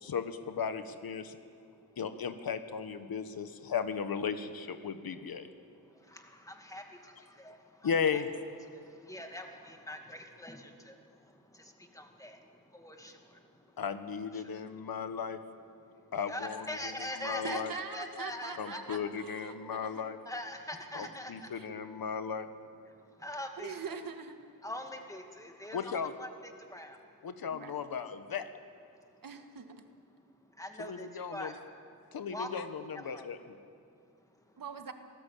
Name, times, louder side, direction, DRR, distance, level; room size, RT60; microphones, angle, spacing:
voice 1, 0.0-1.4 2.0-5.5 7.8-8.3 13.8-15.4 16.1-16.6 17.2-17.7 18.6-20.2 20.9-22.5 25.7-26.1 27.2-28.5 30.8-31.5 32.1-33.4, left 6 dB, 80° left, 9 dB, 1.5 m, -35 dB
voice 2, 6.1-7.1 7.4-7.6 7.8-8.2 9.1-10.9 12.0-12.4 12.7-13.1 16.3-17.6 17.9-19.1 20.3-21.3 23.2-24.0 24.6-27.0 30.6-31.5 32.3-32.5 32.9-33.2, left 1 dB, 10° left, 4 dB, 2.2 m, -42 dB
voice 3, 17.4-20.0 21.0-21.1 21.6-21.7 23.6-24.4 27.5-27.7 29.2-29.7 34.6-34.9, right 5 dB, 65° right, 7 dB, 1.8 m, -43 dB
26.0 x 18.5 x 8.6 m, 2.3 s
wide cardioid pair, 155°, 36 cm